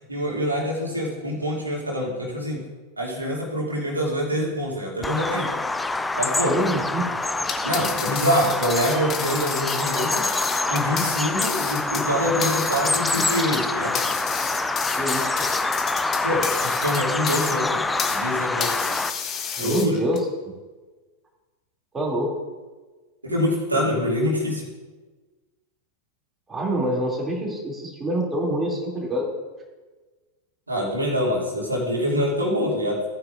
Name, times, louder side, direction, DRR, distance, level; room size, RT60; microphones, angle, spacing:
voice 1, 0.1-2.7 3.0-5.5 6.1-6.6 7.6-10.3 10.7-14.0 16.2-18.9 19.6-20.0 23.2-24.6 30.7-33.0, equal, 80° right, -3 dB, 2.5 m, -25 dB
Bird vocalization bird call bird song, 5.0-19.1, left 2 dB, 10° left, 0.5 m, -26 dB
voice 2, 6.5-7.1 15.0-15.5 19.6-20.2 21.9-22.3 26.5-29.3, right 1 dB, 15° right, -3 dB, 2.7 m, -26 dB
sound 1, 7.4-18.3 18.6-20.2, left 7 dB, 30° left, 1.3 m, -31 dB
15.5 x 9.4 x 2.6 m, 1.3 s
figure-of-eight pair, 90°, 0 cm